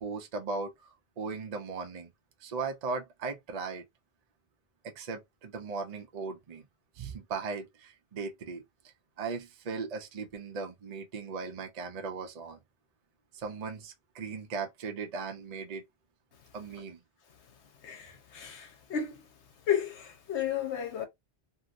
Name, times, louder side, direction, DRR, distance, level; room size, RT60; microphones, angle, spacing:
voice 1, 0.0-2.1 2.4-3.8 4.8-6.6 7.0-8.6 9.2-12.6 13.3-15.8 16.5-17.0, right 4 dB, 45° right, 0.6 m, -38 dB
voice 2, 17.8-19.2 19.7-21.1, left 9 dB, 85° left, 1.1 m, -32 dB
3.0 x 2.8 x 2.5 m
omnidirectional pair, 1.1 m